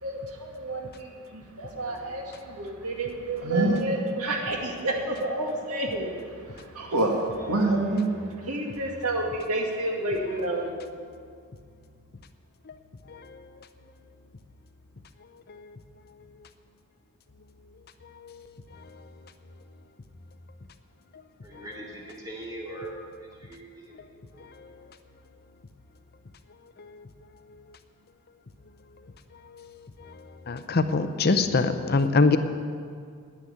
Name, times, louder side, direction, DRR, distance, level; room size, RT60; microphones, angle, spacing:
voice 1, 0.0-6.1 6.7-8.1 8.5-10.8, right 2 dB, 85° right, 1 dB, 2.0 m, -28 dB
voice 2, 21.4-23.0 23.4-24.0 24.3-24.8, right 1 dB, 15° right, -3 dB, 2.5 m, -41 dB
voice 3, 30.5-32.4, left 3 dB, 45° left, 9 dB, 0.6 m, -22 dB
9.9 x 9.7 x 8.6 m, 2.1 s
head